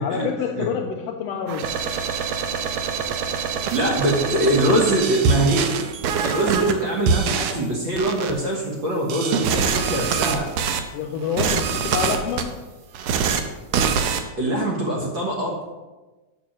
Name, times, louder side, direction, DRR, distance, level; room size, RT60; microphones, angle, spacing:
voice 1, 0.0-1.8 10.9-12.6, left 7 dB, 80° left, 3 dB, 1.5 m, -27 dB
sound 1, 1.5-6.7 7.1-7.5 8.0-8.3 9.1-10.8 11.2-12.4 12.9-13.4 13.7-14.2, right 6 dB, 75° right, 1.6 m, -24 dB
voice 2, 3.7-5.7 6.2-10.5 14.4-15.6, right 1 dB, 50° right, -2 dB, 1.6 m, -23 dB
6.0 x 6.0 x 6.2 m, 1.2 s
omnidirectional pair, 3.3 m